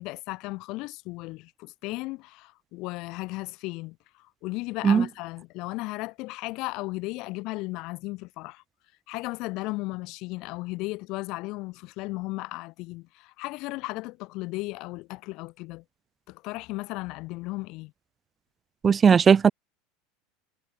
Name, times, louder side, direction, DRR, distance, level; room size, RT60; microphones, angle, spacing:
voice 1, 0.0-4.0 4.4-8.6 9.1-15.8 16.3-17.9, left 22 dB, 55° left, 3.1 m, -35 dB
voice 2, 18.8-19.5, right 6 dB, 30° right, 0.6 m, -17 dB
hypercardioid pair, 80°, 0 cm